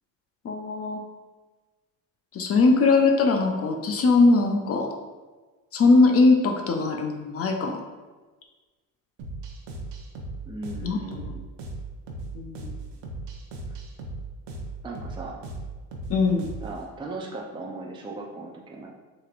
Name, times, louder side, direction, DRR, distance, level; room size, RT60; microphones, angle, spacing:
voice 1, 0.4-1.0 2.3-4.9 5.7-7.8 10.8-11.2 12.3-12.7 16.1-16.5, left 3 dB, 35° left, 3 dB, 0.6 m, -21 dB
sound 1, 9.2-16.8, right 2 dB, 75° right, 0.9 m, -37 dB
voice 2, 10.5-11.4 13.7-13.8 14.8-15.4 16.6-18.9, right 2 dB, 10° right, -1 dB, 0.6 m, -37 dB
6.5 x 3.0 x 2.5 m, 1.3 s
supercardioid pair, 85°, 40 cm